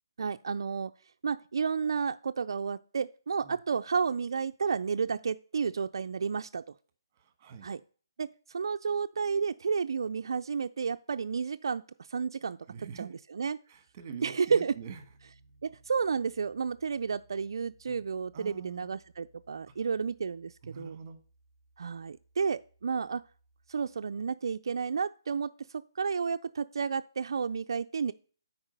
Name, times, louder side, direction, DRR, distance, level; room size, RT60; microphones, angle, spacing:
voice 1, 0.2-0.9 1.2-6.6 7.6-7.8 8.2-11.8 12.1-12.6 13.0-13.6 14.2-14.7 15.6-21.0 21.8-23.2 23.7-25.5 26.0-28.1, right 5 dB, 70° right, 9 dB, 0.3 m, -31 dB
voice 2, 7.2-7.7 12.7-13.2 13.6-15.0 17.9-18.0 18.3-18.9 19.8-19.9 20.6-21.2, right 6 dB, 25° right, 9 dB, 1.4 m, -45 dB
Piano, 14.7-24.3, right 2 dB, 80° left, 2.5 m, -64 dB
8.8 x 4.7 x 5.2 m, 0.41 s
hypercardioid pair, 165°, 2 cm